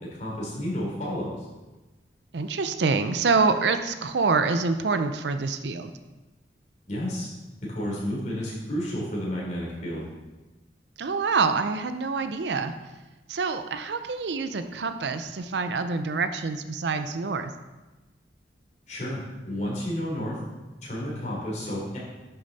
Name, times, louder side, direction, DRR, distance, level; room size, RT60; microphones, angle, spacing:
voice 1, 0.1-1.3 6.9-7.3 7.7-10.0 18.9-20.4 20.8-22.0, equal, 45° left, -5 dB, 3.5 m, -31 dB
voice 2, 2.3-5.9 11.0-12.7 13.3-17.5, right 4 dB, 70° right, 9 dB, 0.5 m, -26 dB
10.5 x 6.8 x 4.1 m, 1.2 s
head